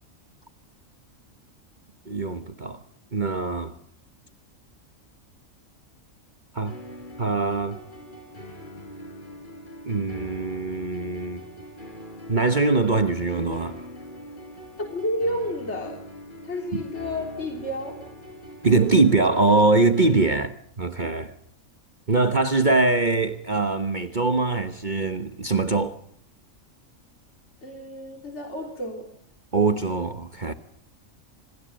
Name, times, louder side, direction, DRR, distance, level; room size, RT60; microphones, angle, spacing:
voice 1, 2.1-2.8 3.1-3.7 6.5-6.8 7.2-7.8 9.9-11.4 12.3-13.9 16.7-16.8 18.6-21.3 22.1-26.0 29.5-30.5, right 3 dB, 35° right, 1.3 m, -22 dB
sound 1, 6.7-20.4, equal, 35° left, 4.7 m, -42 dB
voice 2, 14.8-16.0 16.4-18.0 27.6-29.1, left 1 dB, 55° left, 3.6 m, -30 dB
27.0 x 20.0 x 7.7 m
omnidirectional pair, 1.4 m